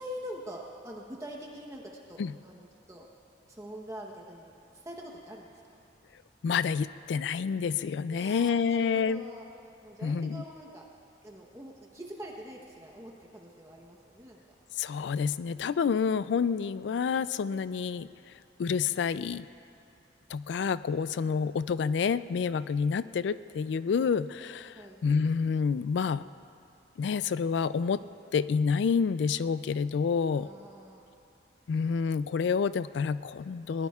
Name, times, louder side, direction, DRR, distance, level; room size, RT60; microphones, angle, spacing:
voice 1, 0.0-3.1 3.5-5.8 8.1-9.4 9.8-10.8 11.2-14.4 24.8-25.0 30.3-31.0, equal, 15° right, -1 dB, 0.9 m, -44 dB
voice 2, 6.4-9.2 10.0-10.4 14.8-18.1 18.6-19.5 20.3-26.2 27.0-28.0 28.3-30.5 31.7-33.9, left 6 dB, 80° left, 15 dB, 0.3 m, -28 dB
21.5 x 19.0 x 2.4 m, 2.6 s
head